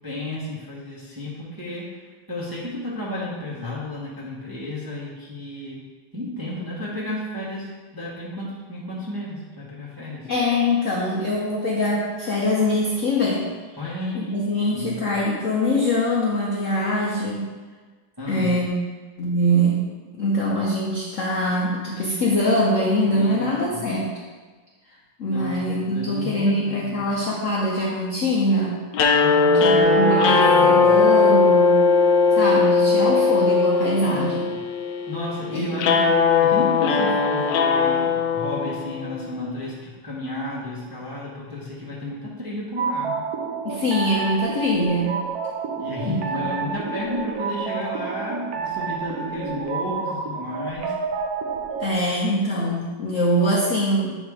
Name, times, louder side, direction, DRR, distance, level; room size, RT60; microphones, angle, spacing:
voice 1, 0.0-1.9 2.3-5.8 6.1-10.3 13.8-14.9 18.2-18.5 23.1-23.9 25.2-27.1 29.2-30.9 33.8-34.6 35.1-43.2 45.8-50.9, left 1 dB, 15° right, -7 dB, 0.9 m, -32 dB
voice 2, 10.2-13.5 14.1-17.5 18.3-18.7 19.2-19.8 20.2-24.1 25.2-28.8 29.5-31.8 32.3-34.5 35.5-35.9 43.6-45.2 46.0-46.8 51.8-54.1, left 1 dB, 55° left, -4 dB, 0.8 m, -23 dB
sound 1, 28.9-39.2, left 4 dB, 75° left, 1.1 m, -19 dB
sound 2, 42.8-52.0, right 5 dB, 85° right, 0.8 m, -29 dB
8.3 x 3.1 x 4.8 m, 1.4 s
omnidirectional pair, 2.4 m